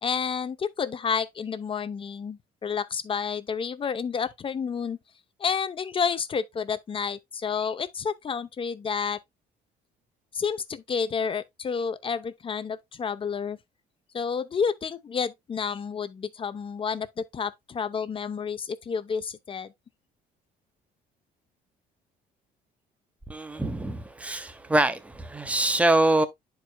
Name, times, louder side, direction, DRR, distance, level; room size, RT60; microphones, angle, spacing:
voice 1, 0.0-5.0 5.4-9.2 10.3-13.6 14.1-19.7, left 6 dB, 30° left, 0.7 m, -30 dB
voice 2, 23.3-26.3, right 2 dB, 10° right, 0.9 m, -24 dB
10.5 x 4.8 x 2.2 m
cardioid pair, 110°, 17 cm